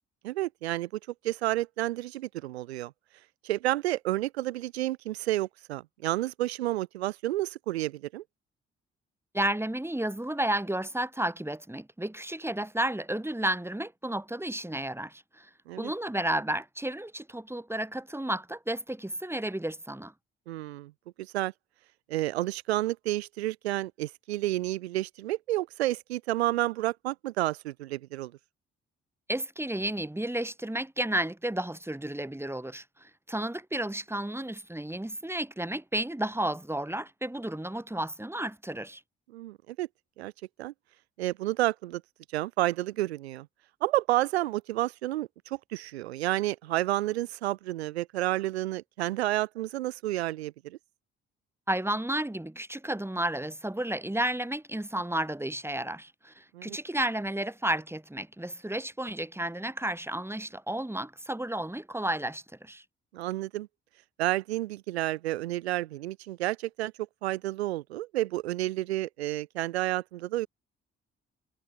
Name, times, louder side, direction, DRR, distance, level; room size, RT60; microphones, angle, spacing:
voice 1, 0.2-0.9 1.2-2.9 3.4-8.2 15.7-15.9 20.5-20.9 21.2-21.5 22.1-28.3 39.3-39.9 40.2-40.3 40.6-40.7 41.2-42.0 42.3-43.5 43.8-50.8 56.5-56.8 63.1-63.7 64.2-66.9 67.2-70.5, right 16 dB, 80° right, 1.6 m, -30 dB
voice 2, 9.3-15.5 15.8-20.1 29.3-39.0 51.7-62.8, right 1 dB, 10° right, 5.0 m, -32 dB
figure-of-eight pair, 40°, 31 cm